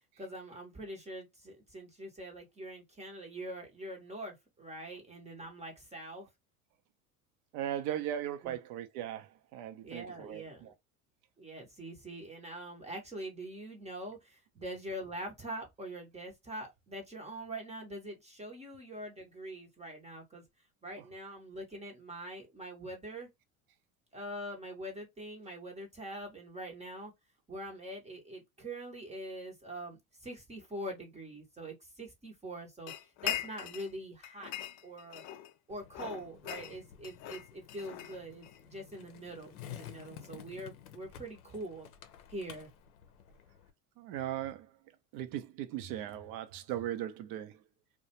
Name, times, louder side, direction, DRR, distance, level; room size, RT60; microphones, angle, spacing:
voice 1, 0.2-6.3 8.4-8.5 9.8-10.7 11.4-20.4 20.8-23.3 24.1-27.1 27.5-32.9 33.2-34.5 34.8-35.2 35.7-41.9 42.3-42.7, right 1 dB, 15° right, 0.7 m, -44 dB
voice 2, 7.5-10.7 44.0-44.7 45.1-47.6, right 11 dB, 55° right, 0.6 m, -38 dB
sound 1, 32.9-33.9 34.2-35.5 35.9-38.6, left 13 dB, 45° left, 0.4 m, -41 dB
Skateboard, 35.7-43.7, left 10 dB, 80° left, 0.6 m, -52 dB
2.3 x 2.1 x 2.7 m
hypercardioid pair, 85°, 43 cm